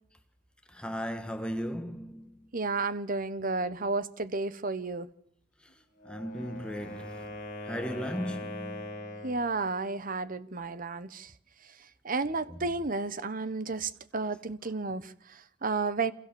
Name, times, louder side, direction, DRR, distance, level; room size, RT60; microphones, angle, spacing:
voice 1, 0.7-2.3 6.0-7.2 7.6-8.9 12.5-12.6, equal, 5° left, 1.6 m, -36 dB
voice 2, 2.5-5.1 9.2-11.3 12.0-16.1, right 3 dB, 45° right, 1.1 m, -32 dB
Wind instrument woodwind instrument, 5.9-9.5, left 1 dB, 40° left, 7.4 m, -41 dB
28.5 x 26.0 x 7.1 m
head